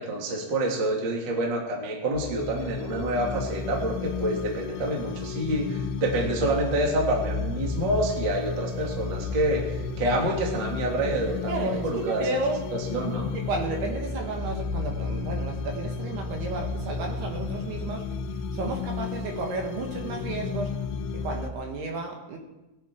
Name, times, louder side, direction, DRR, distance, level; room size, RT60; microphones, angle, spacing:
voice 1, 0.0-12.3 12.7-13.3, right 1 dB, 35° right, -1 dB, 2.2 m, -27 dB
sound 1, 2.1-21.5, left 5 dB, 85° left, 3.4 m, -33 dB
voice 2, 11.5-12.6 13.5-18.1 18.5-20.7 21.2-22.4, right 3 dB, 65° right, 1 dB, 3.4 m, -32 dB
19.5 x 10.5 x 4.6 m, 1.0 s
omnidirectional pair, 5.3 m